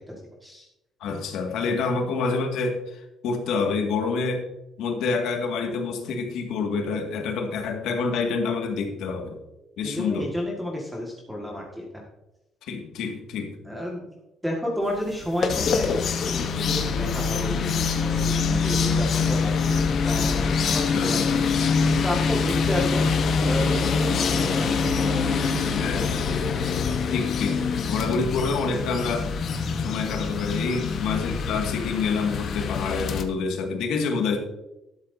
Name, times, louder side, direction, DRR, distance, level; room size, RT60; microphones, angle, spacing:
voice 1, 1.0-4.4 4.8-9.4 9.8-10.3 12.7-13.6 20.9-21.1 25.7-26.2 27.1-29.3 29.8-34.4, left 4 dB, 75° left, 3 dB, 2.0 m, -27 dB
voice 2, 9.8-12.0 13.6-14.0 14.4-21.4 22.0-23.0 23.4-25.8, left 1 dB, 5° right, -2 dB, 1.8 m, -32 dB
sound 1, 15.1-33.2, left 5 dB, 45° left, 1.0 m, -24 dB
12.5 x 12.0 x 2.7 m, 0.92 s
cardioid pair, 170°, 0 cm